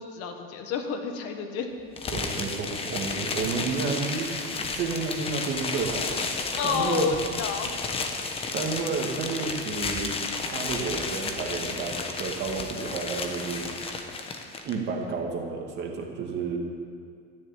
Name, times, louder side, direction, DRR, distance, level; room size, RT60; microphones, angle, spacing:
voice 1, 0.0-1.7 6.6-7.7, left 6 dB, 55° left, 5 dB, 1.6 m, -29 dB
sound 1, 2.0-14.7, left 4 dB, 20° left, 1.0 m, -32 dB
voice 2, 2.1-6.3 6.6-7.1 8.5-10.1 10.4-13.7 14.6-16.6, right 4 dB, 35° right, 1 dB, 2.1 m, -31 dB
13.5 x 10.5 x 9.2 m, 2.2 s
cardioid pair, 175°, 29 cm